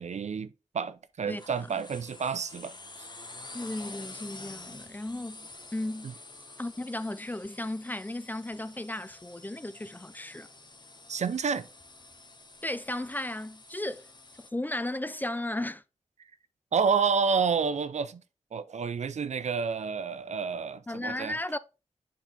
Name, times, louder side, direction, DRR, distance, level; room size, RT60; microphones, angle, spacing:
voice 1, 0.0-2.7 6.0-6.1 11.1-11.7 16.7-18.2 18.5-21.4, right 6 dB, 65° right, 0.5 m, -29 dB
sound 1, 1.3-14.5, left 2 dB, 35° left, 1.1 m, -48 dB
voice 2, 3.5-6.1 6.6-10.5 12.6-14.1 14.4-15.8 20.9-21.6, left 1 dB, 15° left, 0.4 m, -35 dB
7.2 x 4.2 x 3.7 m
cardioid pair, 40°, 13 cm